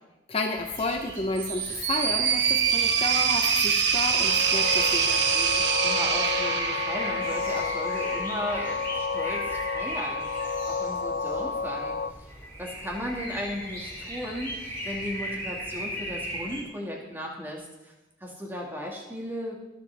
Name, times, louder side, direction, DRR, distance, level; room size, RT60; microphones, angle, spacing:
voice 1, 0.3-5.6, left 2 dB, 30° left, 3 dB, 0.7 m, -31 dB
sound 1, 0.5-16.6, equal, 10° left, 4.1 m, -38 dB
sound 2, 1.4-7.6, right 7 dB, 65° right, 1.1 m, -24 dB
sound 3, 4.0-12.1, left 4 dB, 55° left, 0.4 m, -31 dB
voice 2, 5.8-14.5 14.8-17.9 18.2-19.5, equal, 10° right, -1 dB, 2.1 m, -36 dB
23.0 x 7.6 x 3.5 m, 1.0 s
head